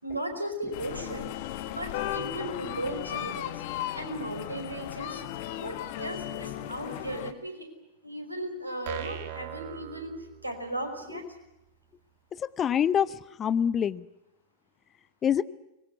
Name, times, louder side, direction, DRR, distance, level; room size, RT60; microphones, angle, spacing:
voice 1, 0.0-1.3 1.6-3.6 3.9-5.2 5.5-7.7 8.0-10.1 10.4-11.3, right 1 dB, 85° right, 5 dB, 5.3 m, -36 dB
sound 1, 0.7-7.3, left 12 dB, 50° left, 1.4 m, -36 dB
sound 2, 8.9-10.8, right 10 dB, 50° right, 2.7 m, -39 dB
voice 2, 12.4-14.1 15.2-15.4, left 8 dB, 25° left, 17 dB, 0.9 m, -26 dB
24.0 x 22.0 x 8.4 m, 0.91 s
figure-of-eight pair, 90°, 0 cm